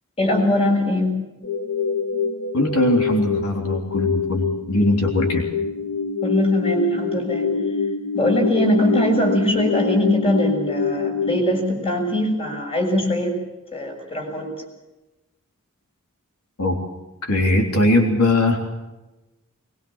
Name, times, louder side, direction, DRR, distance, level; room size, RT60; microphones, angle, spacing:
voice 1, 0.2-1.2 6.2-7.5 8.1-13.4 13.7-14.5, left 1 dB, 25° left, 1 dB, 6.7 m, -21 dB
sound 1, 1.4-11.4, left 5 dB, 55° left, 2.4 m, -25 dB
voice 2, 2.5-5.4 16.6-16.8 17.2-18.6, left 1 dB, 75° left, 2 dB, 3.7 m, -20 dB
22.0 x 22.0 x 7.3 m, 1.0 s
head